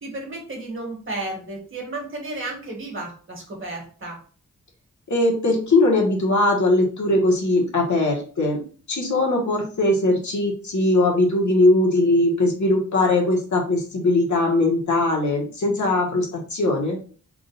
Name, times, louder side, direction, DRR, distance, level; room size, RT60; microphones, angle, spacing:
voice 1, 0.0-4.2, right 2 dB, 40° right, 0 dB, 1.5 m, -33 dB
voice 2, 5.1-17.0, left 2 dB, 60° left, -1 dB, 1.3 m, -20 dB
3.7 x 2.5 x 3.9 m, 0.41 s
wide cardioid pair, 115°, 33 cm